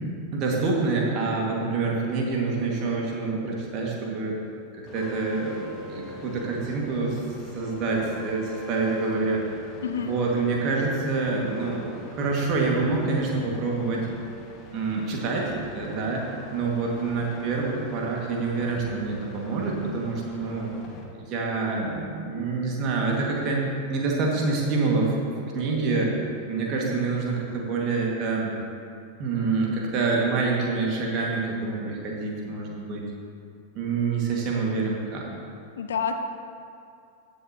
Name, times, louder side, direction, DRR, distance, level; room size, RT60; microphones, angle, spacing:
voice 1, 0.3-4.4 4.8-7.2 7.5-9.4 10.1-14.1 14.7-16.2 16.5-20.7 21.2-23.6 23.9-25.1 25.5-26.1 26.5-28.5 29.2-33.0 33.8-35.3, right 3 dB, 40° right, -2 dB, 2.1 m, -26 dB
sound 1, 4.9-21.0, left 2 dB, 30° left, 1.4 m, -43 dB
voice 2, 9.8-10.1 35.8-36.2, left 7 dB, 65° left, 7 dB, 0.6 m, -28 dB
15.5 x 7.4 x 3.0 m, 2.6 s
figure-of-eight pair, 90°, 0 cm